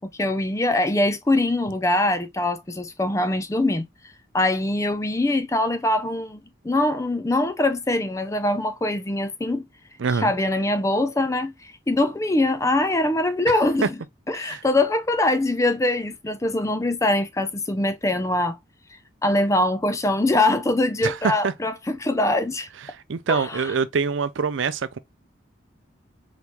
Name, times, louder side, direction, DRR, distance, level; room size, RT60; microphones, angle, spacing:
voice 1, 0.0-3.9 4.3-9.7 10.1-14.0 14.3-18.6 19.2-22.7 23.3-23.7, left 1 dB, 15° left, 0.4 m, -23 dB
voice 2, 10.0-10.3 13.5-13.9 14.3-14.6 21.0-21.5 23.1-25.0, right 5 dB, 75° right, 0.5 m, -25 dB
3.9 x 3.6 x 3.0 m
head